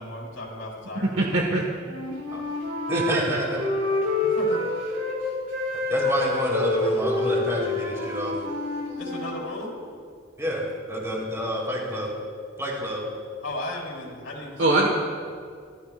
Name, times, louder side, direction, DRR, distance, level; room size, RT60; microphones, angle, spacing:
voice 1, 0.0-1.1 4.2-4.6 9.0-9.7 13.4-14.9, left 1 dB, 85° left, -3 dB, 4.4 m, -35 dB
voice 2, 0.9-1.6 2.9-3.4 14.6-14.9, right 2 dB, 70° right, 0 dB, 1.5 m, -23 dB
Wind instrument woodwind instrument, 1.8-5.2 5.5-9.4, left 2 dB, 90° right, 4.4 m, -27 dB
voice 3, 2.9-3.6 5.9-8.3 10.4-12.1 12.6-13.0, equal, 15° right, -3 dB, 3.8 m, -28 dB
26.5 x 14.0 x 2.5 m, 2.1 s
head